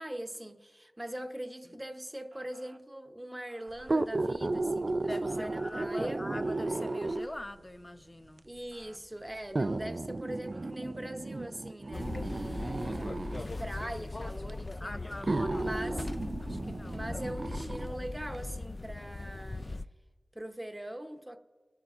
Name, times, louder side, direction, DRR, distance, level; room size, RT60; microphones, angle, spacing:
voice 1, 0.0-6.2 8.4-15.0 15.6-16.0 16.9-19.7 20.3-21.4, right 1 dB, 15° right, 0.8 m, -42 dB
Motor vehicle (road) / Siren, 2.3-2.8 3.5-4.1 5.3-5.8 6.4-7.4 8.7-9.0 10.5-10.7, right 2 dB, 65° right, 0.9 m, -58 dB
sound 1, 3.8-7.5 8.4-8.5 9.6-13.5 14.5-14.6 15.2-17.9 18.3-18.4, right 2 dB, 45° right, 0.3 m, -34 dB
voice 2, 5.1-8.4 12.7-12.8 14.8-17.1, left 1 dB, 25° left, 0.7 m, -43 dB
sound 2, 11.9-19.8, left 2 dB, 40° left, 0.3 m, -39 dB
24.0 x 11.5 x 2.4 m
wide cardioid pair, 75°, 0 cm